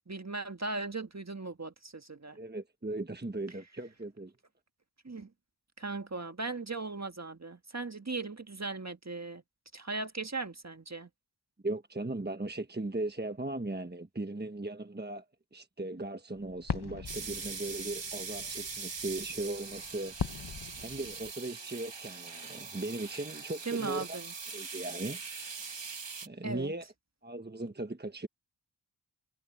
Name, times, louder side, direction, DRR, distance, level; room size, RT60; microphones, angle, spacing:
voice 1, 0.0-2.4 5.0-5.3 5.8-9.4 9.7-11.1 23.6-24.3 26.4-26.7, right 3 dB, 40° right, 1.6 m, -38 dB
voice 2, 2.4-4.3 11.6-15.2 15.5-20.4 20.8-24.2 24.5-25.5 26.2-26.9 27.2-28.3, right 2 dB, 25° right, 1.3 m, -38 dB
sound 1, 16.4-21.3, left 6 dB, 65° left, 1.2 m, -41 dB
sound 2, 17.1-26.3, right 5 dB, 90° right, 1.8 m, -42 dB
wide cardioid pair, 45°, 42 cm